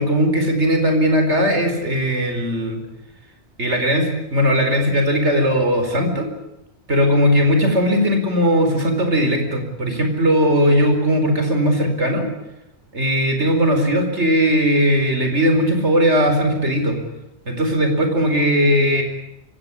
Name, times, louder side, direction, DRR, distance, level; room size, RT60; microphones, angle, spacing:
voice 1, 0.0-2.8 3.6-6.3 6.9-12.3 12.9-17.0 17.5-19.0, equal, 85° right, 5 dB, 4.9 m, -18 dB
24.5 x 17.0 x 9.9 m, 0.90 s
omnidirectional pair, 1.1 m